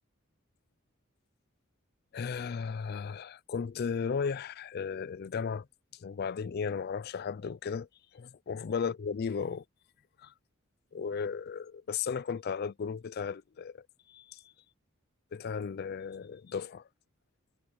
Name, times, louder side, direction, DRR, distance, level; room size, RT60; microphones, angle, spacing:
voice 1, 2.1-5.7 6.0-7.9 8.1-9.6 10.2-10.3 10.9-13.8 14.1-14.4 15.3-16.8, left 6 dB, 50° left, 0.4 m, -35 dB
head